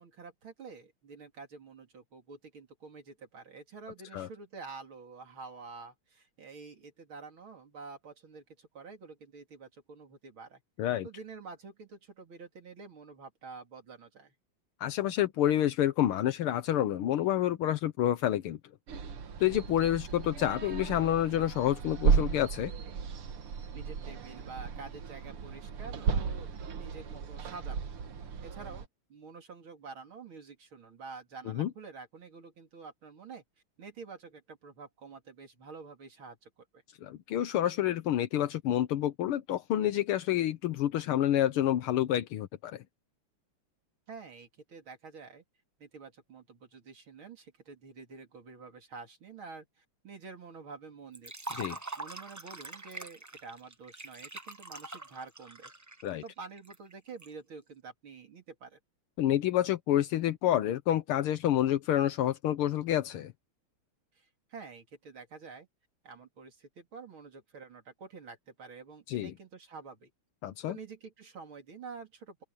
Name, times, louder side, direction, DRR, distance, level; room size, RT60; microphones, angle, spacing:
voice 1, 0.0-10.6 11.0-14.3 23.7-27.8 28.4-33.4 33.8-36.8 44.1-45.4 45.8-51.3 52.0-55.7 56.2-58.8 64.1-65.7 66.0-70.1 70.7-72.4, right 4 dB, 70° right, 3.6 m, -48 dB
voice 2, 14.8-18.6 19.4-22.7 31.5-31.7 37.0-42.8 51.5-51.8 56.0-56.2 59.2-63.3 69.1-69.3 70.4-70.8, left 12 dB, 80° left, 1.8 m, -28 dB
sound 1, 18.9-28.9, right 6 dB, 90° right, 2.4 m, -34 dB
Liquid, 51.1-57.3, right 2 dB, 25° right, 0.3 m, -44 dB
open air
omnidirectional pair, 2.4 m